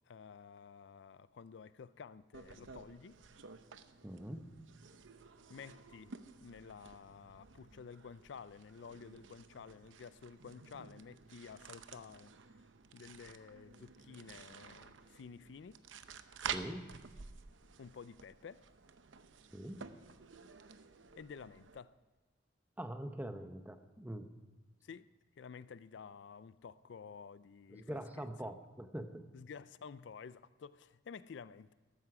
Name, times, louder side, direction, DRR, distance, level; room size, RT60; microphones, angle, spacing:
voice 1, 0.1-3.2 5.5-6.1 6.4-12.3 12.9-15.8 17.8-18.6 21.2-21.9 24.8-28.5 29.3-31.7, left 6 dB, 65° left, 0.4 m, -52 dB
sound 1, 2.3-21.8, right 6 dB, 80° right, 0.7 m, -51 dB
voice 2, 4.0-4.5 16.4-16.9 19.5-19.9 22.8-24.3 27.7-29.2, right 1 dB, 10° right, 0.7 m, -44 dB
14.0 x 12.5 x 4.9 m
head